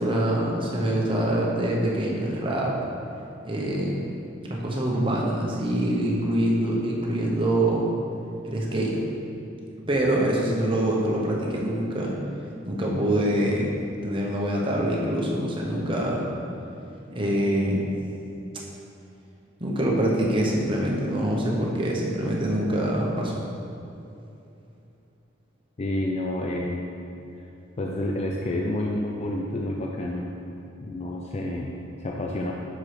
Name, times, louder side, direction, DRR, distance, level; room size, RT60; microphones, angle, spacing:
voice 1, 0.0-2.7 3.4-7.9 8.4-9.0 9.9-12.1 12.7-13.7 14.0-16.3 17.1-17.9 19.6-23.4, right 1 dB, 25° right, -2 dB, 0.9 m, -25 dB
voice 2, 25.8-26.9 27.8-30.3 30.8-32.5, left 1 dB, 35° left, -1 dB, 0.4 m, -29 dB
5.9 x 4.7 x 4.9 m, 2.8 s
head